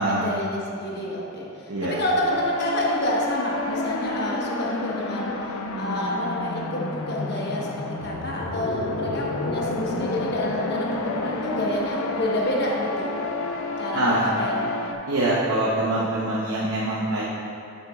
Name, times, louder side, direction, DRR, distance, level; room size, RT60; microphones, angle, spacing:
voice 1, 0.0-13.1 13.8-14.8, left 1 dB, 50° left, -3 dB, 1.2 m, -28 dB
voice 2, 1.7-2.0 13.9-14.3 15.1-17.2, right 1 dB, 80° right, -6 dB, 0.9 m, -24 dB
sound 1, 2.3-14.9, left 3 dB, 90° left, 0.6 m, -30 dB
10.0 x 7.2 x 2.4 m, 2.8 s
head